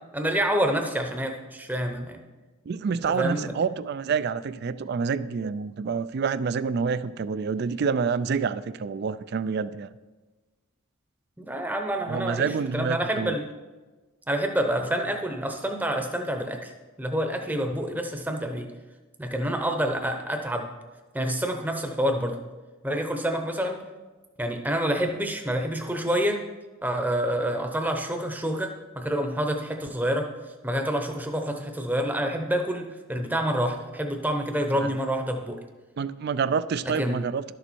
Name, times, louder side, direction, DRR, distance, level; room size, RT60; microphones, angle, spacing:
voice 1, 0.1-2.2 3.1-3.5 11.4-13.4 14.3-16.7 17.0-18.7 19.2-20.7 21.1-22.4 22.8-23.8 24.4-26.4 26.8-30.3 30.6-35.6 36.8-37.2, equal, 10° right, 4 dB, 0.7 m, -27 dB
voice 2, 2.7-9.9 12.1-13.3 34.8-34.9 36.0-37.5, right 5 dB, 45° right, 15 dB, 0.3 m, -27 dB
12.0 x 6.9 x 4.5 m, 1.2 s
head